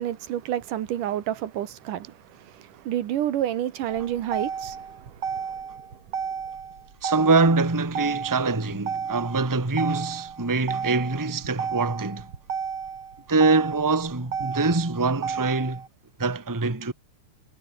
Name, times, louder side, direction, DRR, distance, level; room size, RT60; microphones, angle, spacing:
voice 1, 0.0-5.4, right 11 dB, 85° right, 3.1 m, -29 dB
Motor vehicle (road), 3.9-15.9, right 6 dB, 45° right, 3.1 m, -33 dB
voice 2, 7.0-12.3 13.3-15.8 16.2-16.9, right 3 dB, 10° right, 1.3 m, -24 dB
omnidirectional pair, 3.6 m